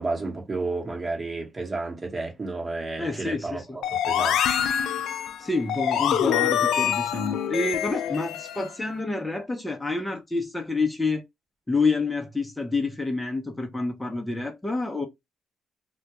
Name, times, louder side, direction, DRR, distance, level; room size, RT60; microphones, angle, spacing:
voice 1, 0.0-4.4, right 3 dB, 30° right, 0.9 m, -31 dB
voice 2, 3.0-3.6 5.4-11.2 11.7-15.1, left 3 dB, 10° left, 0.6 m, -28 dB
sound 1, 3.8-8.7, left 10 dB, 80° left, 0.3 m, -25 dB
2.2 x 2.2 x 2.8 m
cardioid pair, 90°, 0 cm